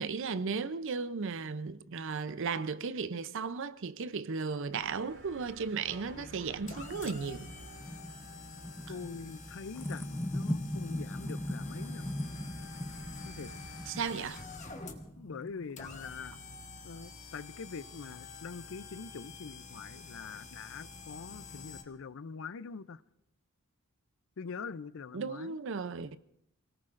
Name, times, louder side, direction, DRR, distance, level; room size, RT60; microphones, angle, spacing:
voice 1, 0.0-7.5 13.9-14.4 25.1-26.2, right 5 dB, 60° right, 0.6 m, -35 dB
sound 1, 4.6-14.4, right 2 dB, 85° right, 4.4 m, -55 dB
sound 2, 5.9-21.8, left 4 dB, 35° left, 1.3 m, -48 dB
sound 3, 6.0-16.1, left 1 dB, 10° left, 0.6 m, -40 dB
voice 2, 8.9-12.1 13.2-13.5 15.2-16.4 16.8-23.0 24.4-25.6, left 5 dB, 60° left, 0.5 m, -44 dB
28.0 x 18.0 x 2.5 m
head